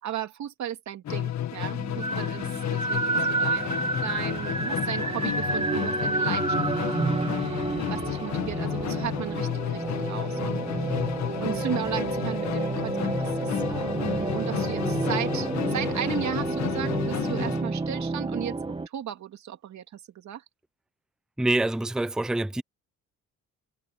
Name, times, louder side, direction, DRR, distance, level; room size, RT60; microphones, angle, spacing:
voice 1, 0.0-6.7 7.0-10.6 11.4-18.6 18.9-20.4, right 10 dB, 65° right, 2.3 m, -36 dB
Musical instrument, 1.0-17.7, left 11 dB, 65° left, 1.7 m, -32 dB
sound 1, 1.8-18.9, right 3 dB, 20° right, 1.4 m, -30 dB
voice 2, 21.4-22.6, right 2 dB, ahead, 0.6 m, -26 dB
cardioid pair, 90°, 30 cm